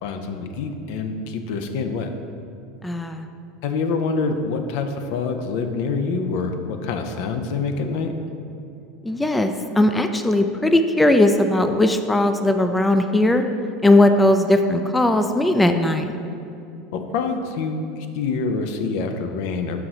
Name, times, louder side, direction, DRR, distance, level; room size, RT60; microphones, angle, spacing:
voice 1, 0.0-2.1 3.6-8.1 16.9-19.8, left 4 dB, 70° left, 6 dB, 0.5 m, -26 dB
voice 2, 2.8-3.3 9.0-13.4 13.8-16.1, left 1 dB, 10° left, 7 dB, 0.3 m, -18 dB
5.8 x 4.7 x 3.9 m, 2.7 s
supercardioid pair, 100°, 0 cm